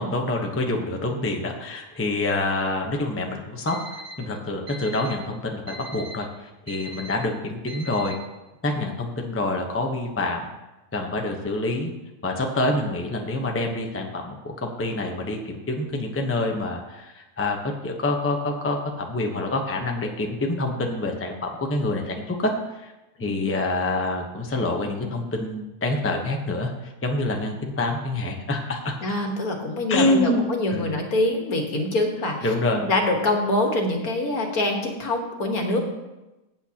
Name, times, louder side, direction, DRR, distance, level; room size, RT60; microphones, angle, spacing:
voice 1, 0.0-3.8 4.2-6.3 6.7-8.2 8.6-10.5 10.9-11.9 12.2-22.5 23.2-28.9 29.9-30.4 30.7-31.0 32.4-32.9, left 2 dB, 10° left, 1 dB, 0.8 m, -26 dB
Alarm, 3.7-4.1 4.7-5.1 5.7-6.1 6.7-7.1 7.7-8.1, right 3 dB, 80° right, 2.2 m, -40 dB
voice 2, 29.0-32.5 32.8-35.8, left 1 dB, 65° left, 2 dB, 1.9 m, -25 dB
14.5 x 8.9 x 2.9 m, 1.0 s
omnidirectional pair, 1.6 m